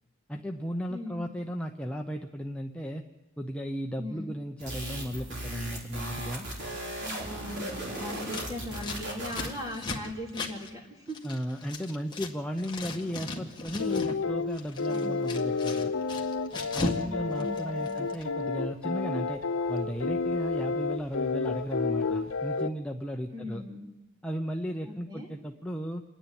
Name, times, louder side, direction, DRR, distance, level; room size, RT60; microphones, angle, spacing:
voice 1, 0.3-3.1 3.4-6.5 11.2-15.9 16.7-19.4 19.7-23.6 24.2-26.0, equal, 5° left, 2 dB, 0.8 m, -35 dB
voice 2, 0.9-1.2 4.0-4.3 7.0-11.2 14.9-15.2 17.1-18.0 23.3-23.9 24.9-25.3, left 1 dB, 20° right, 0 dB, 3.5 m, -39 dB
sound 1, 4.6-9.7, right 1 dB, 55° right, 4.1 m, -37 dB
Scissors, 8.2-12.3 12.6-14.2 14.5-17.1 17.3-18.2, left 2 dB, 20° left, 1.7 m, -37 dB
sound 2, 13.8-22.7, left 4 dB, 85° left, 0.8 m, -30 dB
27.0 x 10.0 x 10.0 m, 1.0 s
head